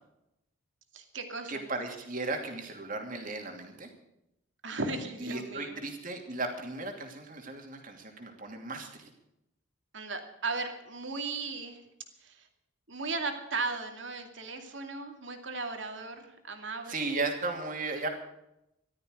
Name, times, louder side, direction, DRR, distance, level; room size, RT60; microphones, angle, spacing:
voice 1, 0.9-1.6 4.6-5.8 9.9-11.8 12.2-12.5 12.9-17.1, right 3 dB, 65° right, 5 dB, 2.4 m, -36 dB
voice 2, 1.5-3.9 5.2-9.1 16.9-18.1, right 3 dB, 40° right, 3 dB, 2.8 m, -36 dB
14.5 x 13.0 x 6.7 m, 0.85 s
head